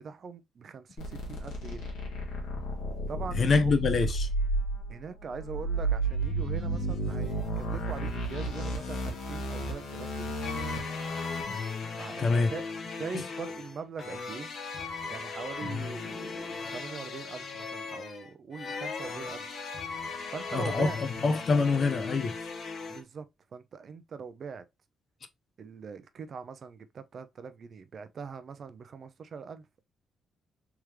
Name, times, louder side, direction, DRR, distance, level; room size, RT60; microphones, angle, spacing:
voice 1, 0.0-1.9 3.1-3.7 4.9-10.4 12.0-14.5 15.1-19.5 20.3-21.0 22.9-23.3 23.5-24.6 25.6-29.8, right 5 dB, 55° right, 0.6 m, -42 dB
sound 1, 1.0-11.8, right 1 dB, 85° left, 1.2 m, -32 dB
voice 2, 3.4-4.3 12.2-12.5 13.1-13.2 20.5-22.3, left 4 dB, 50° left, 0.7 m, -25 dB
sound 2, 10.4-23.0, left 4 dB, 65° left, 1.0 m, -38 dB
3.6 x 3.2 x 3.0 m
cardioid pair, 75°, 0 cm